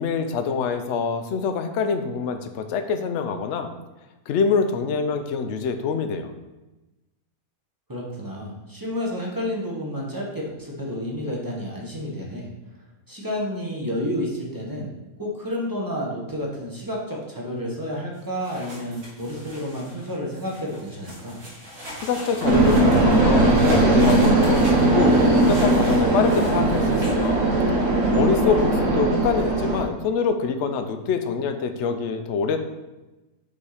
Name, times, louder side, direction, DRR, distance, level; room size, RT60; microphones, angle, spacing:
voice 1, 0.0-3.7 4.3-6.3 22.0-27.5 28.1-32.6, left 5 dB, 65° left, 8 dB, 0.8 m, -25 dB
voice 2, 7.9-12.5 13.1-21.4, equal, 15° right, -3 dB, 1.0 m, -30 dB
sound 1, 18.2-27.3, equal, 80° right, 2.2 m, -38 dB
sound 2, 22.4-29.8, right 2 dB, 65° right, 1.3 m, -19 dB
5.5 x 4.0 x 4.9 m, 1.1 s
omnidirectional pair, 1.5 m